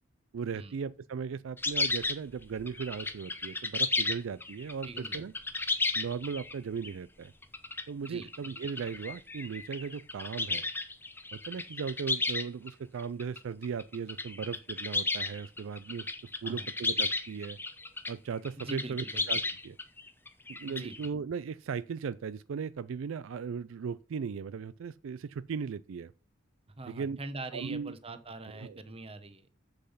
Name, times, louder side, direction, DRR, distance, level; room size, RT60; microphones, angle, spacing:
voice 1, 0.3-5.3 5.9-7.3 7.9-10.7 11.3-16.1 16.4-17.6 18.1-19.8 20.5-26.1 26.9-27.2 27.5-28.0 28.5-28.8, right 6 dB, 70° right, 0.4 m, -37 dB
sound 1, 1.6-6.9 7.4-12.7 13.0-18.1 18.4-21.1, left 3 dB, 10° left, 0.8 m, -33 dB
voice 2, 4.8-5.2 8.0-8.3 16.4-16.7 18.6-19.2 20.7-21.0 26.8-29.6, right 2 dB, 30° right, 1.0 m, -43 dB
7.7 x 6.9 x 5.6 m
head